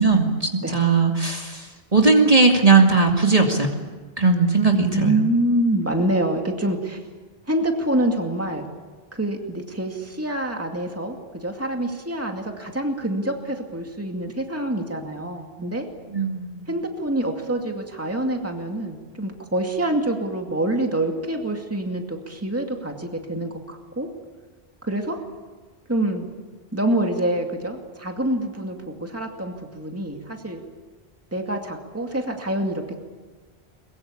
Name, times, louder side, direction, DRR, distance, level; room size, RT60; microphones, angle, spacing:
voice 1, 0.0-3.7 4.2-5.1 16.1-16.7, right 4 dB, 35° right, 2 dB, 2.3 m, -18 dB
voice 2, 4.7-7.0 7.5-8.7 9.1-15.9 16.7-24.1 24.9-25.2 25.9-26.3 26.7-30.6 31.3-33.0, right 1 dB, 15° right, 3 dB, 2.3 m, -26 dB
22.5 x 22.0 x 8.6 m, 1.4 s
omnidirectional pair, 1.1 m